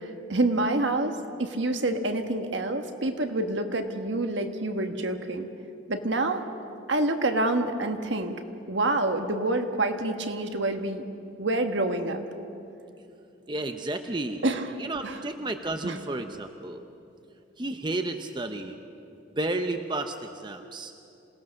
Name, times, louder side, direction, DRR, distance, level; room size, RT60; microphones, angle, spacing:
voice 1, 0.0-5.5 5.9-6.5 6.9-8.3 8.7-11.0 11.4-12.2 14.4-14.7 15.0-15.2 15.8-16.0, right 2 dB, 65° right, 6 dB, 1.4 m, -27 dB
voice 2, 13.5-14.4 14.8-16.8 17.6-18.8 19.4-20.9, right 2 dB, 25° right, 6 dB, 0.7 m, -32 dB
27.0 x 18.0 x 6.5 m, 2.7 s
head